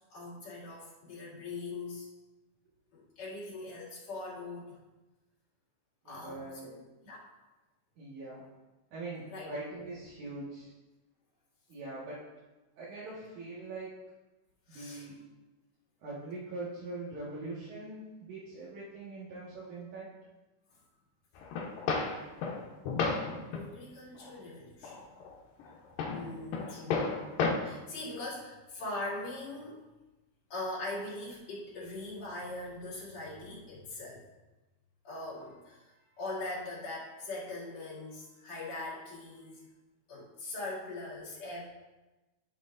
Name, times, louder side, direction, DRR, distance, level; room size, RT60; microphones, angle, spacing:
voice 1, 0.0-2.1 2.9-4.8 6.1-6.8 7.0-7.3 9.3-9.5 14.7-15.1 23.5-25.1 26.1-27.1 27.6-29.8 30.5-34.2 35.0-39.7 40.1-41.7, left 2 dB, 55° left, -8 dB, 3.5 m, -41 dB
voice 2, 6.0-6.8 8.0-8.4 8.9-10.7 11.7-12.2 12.8-14.0 14.7-15.2 16.0-20.1 27.0-27.3, right 2 dB, 65° right, -10 dB, 3.0 m, -42 dB
sound 1, 21.4-23.7 24.1-24.3 24.8-25.3 25.6-27.5, left 4 dB, 80° left, 2.6 m, -33 dB
11.0 x 6.6 x 2.5 m, 1.1 s
omnidirectional pair, 3.9 m